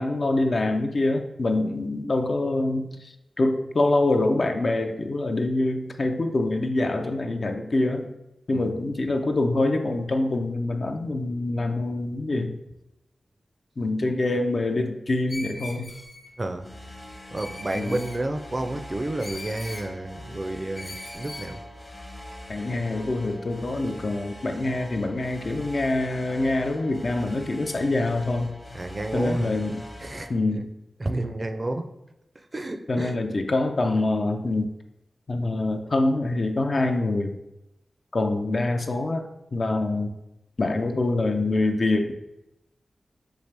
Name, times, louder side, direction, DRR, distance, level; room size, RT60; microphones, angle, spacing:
voice 1, 0.0-8.1 8.5-12.6 13.8-16.0 17.7-18.0 22.5-28.5 29.1-29.8 30.3-30.7 32.9-34.7 35.3-37.4 38.1-39.2 39.5-40.1 40.6-42.1, left 2 dB, 55° left, 5 dB, 0.4 m, -25 dB
Screech, 15.3-16.3 17.4-18.2 19.2-19.9 20.7-21.5, left 2 dB, 80° left, 0.9 m, -40 dB
sound 1, 16.6-30.3, left 1 dB, 30° left, 0.8 m, -43 dB
voice 2, 17.3-21.6 28.7-29.6 30.0-30.3 31.0-31.9 32.5-33.2, right 2 dB, 40° right, 6 dB, 0.4 m, -30 dB
4.5 x 2.5 x 3.3 m, 0.89 s
cardioid pair, 40°, 0 cm